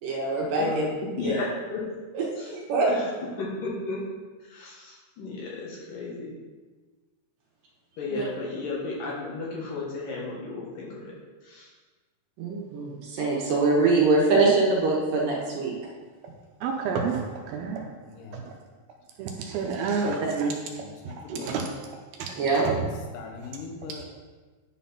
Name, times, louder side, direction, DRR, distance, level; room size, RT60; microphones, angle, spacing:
voice 1, 0.0-0.8 1.2-1.4 2.1-2.9 8.1-8.2 12.4-15.7 20.0-20.5 21.3-21.4 22.4-22.7, right 3 dB, 65° right, -3 dB, 2.5 m, -24 dB
voice 2, 0.5-1.8 2.4-2.5 2.9-3.0 3.4-4.0 4.5-6.3 8.0-11.1 11.4-11.7, left 3 dB, 65° left, -4 dB, 2.8 m, -33 dB
voice 3, 16.6-17.8 18.3-18.4 19.2-20.5 21.4-21.7 22.2-22.3 22.7-22.9, right 5 dB, 80° right, 2 dB, 2.4 m, -29 dB
voice 4, 18.0-18.4 20.8-21.8 22.5-22.9 23.1-24.1, left 5 dB, 85° left, 1 dB, 3.1 m, -42 dB
10.0 x 4.1 x 5.6 m, 1.3 s
omnidirectional pair, 4.8 m